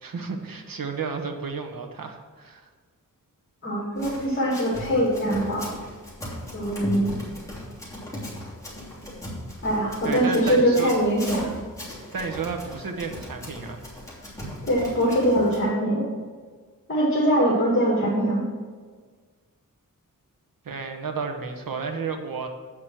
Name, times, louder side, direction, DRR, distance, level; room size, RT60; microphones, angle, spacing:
voice 1, 0.0-2.7 10.0-10.9 12.1-13.8 20.6-22.5, right 4 dB, 80° right, 5 dB, 1.1 m, -32 dB
voice 2, 3.6-5.7 6.5-7.1 9.6-11.5 14.6-16.0 16.9-18.4, equal, 35° left, -6 dB, 2.4 m, -22 dB
Run, 4.0-15.6, equal, 10° left, 3.1 m, -37 dB
8.5 x 6.1 x 6.2 m, 1.5 s
wide cardioid pair, 90°, 34 cm